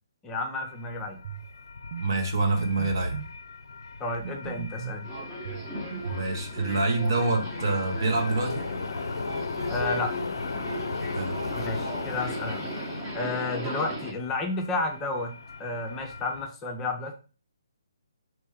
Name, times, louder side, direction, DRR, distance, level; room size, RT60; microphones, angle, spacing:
voice 1, 0.2-1.2 4.0-5.1 9.7-10.1 11.6-12.7 13.1-15.3 15.6-17.1, left 3 dB, 15° left, 3 dB, 0.5 m, -31 dB
sound 1, 0.6-16.5, left 4 dB, 70° left, 0.4 m, -37 dB
sound 2, 1.2-1.5 1.9-2.1 2.6-3.3 4.2-5.0 5.4-6.4, right 6 dB, 40° right, 0.4 m, -37 dB
voice 2, 2.0-3.2 6.0-8.7 11.1-11.4, right 3 dB, 60° right, 2 dB, 1.1 m, -26 dB
Subway metro underground, 5.0-14.1, right 1 dB, 25° right, 1.0 m, -37 dB
3.2 x 3.0 x 3.5 m, 0.36 s
figure-of-eight pair, 140°, 2 cm